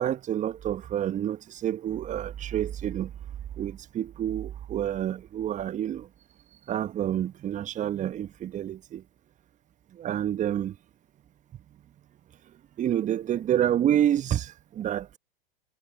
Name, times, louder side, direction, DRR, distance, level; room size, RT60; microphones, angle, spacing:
voice 1, 0.0-3.1 3.6-6.1 6.7-9.0 9.9-10.8 11.5-11.6 12.8-15.2, right 11 dB, 25° right, 1.4 m, -28 dB
figure-of-eight pair, 95°, 30 cm